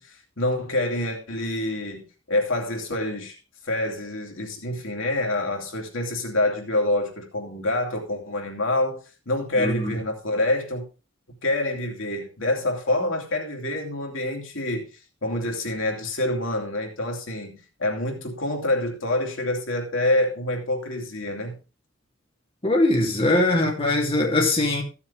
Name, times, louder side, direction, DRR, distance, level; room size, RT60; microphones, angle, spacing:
voice 1, 0.0-3.4 3.6-9.0 9.3-10.8 11.4-14.9 15.2-21.5, left 1 dB, 80° left, 2.8 m, -26 dB
voice 2, 9.6-9.9 22.6-24.8, left 2 dB, 30° left, 2.7 m, -21 dB
15.0 x 7.2 x 3.4 m
head